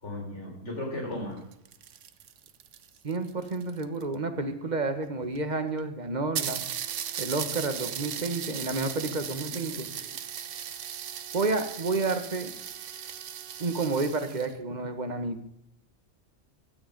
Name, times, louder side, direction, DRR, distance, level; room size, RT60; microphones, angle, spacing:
voice 1, 0.0-1.4 9.7-10.1, left 1 dB, 65° left, 0 dB, 4.4 m, -36 dB
sound 1, 1.4-4.1 5.0-5.1 5.4-5.5 5.8-5.9 6.4-14.5, right 9 dB, 75° right, 1.1 m, -37 dB
voice 2, 3.0-6.6 7.2-9.9 11.3-12.5 13.6-15.4, right 3 dB, 35° right, 8 dB, 1.6 m, -30 dB
16.0 x 12.5 x 5.2 m, 0.76 s
omnidirectional pair, 1.3 m